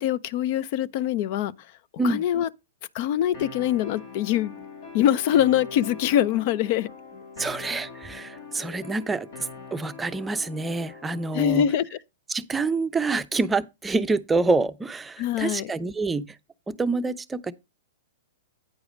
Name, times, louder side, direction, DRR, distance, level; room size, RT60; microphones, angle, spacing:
voice 1, 0.0-1.5 2.0-2.5 2.9-4.5 4.9-6.9 11.3-12.0 15.2-15.7, left 11 dB, 50° left, 0.6 m, -23 dB
sound 1, 3.3-11.3, left 4 dB, 70° left, 3.8 m, -42 dB
voice 2, 7.4-9.3 9.7-11.6 12.3-16.3 16.7-17.5, right 3 dB, 10° right, 0.6 m, -27 dB
9.3 x 4.8 x 5.2 m
hypercardioid pair, 120°, 0 cm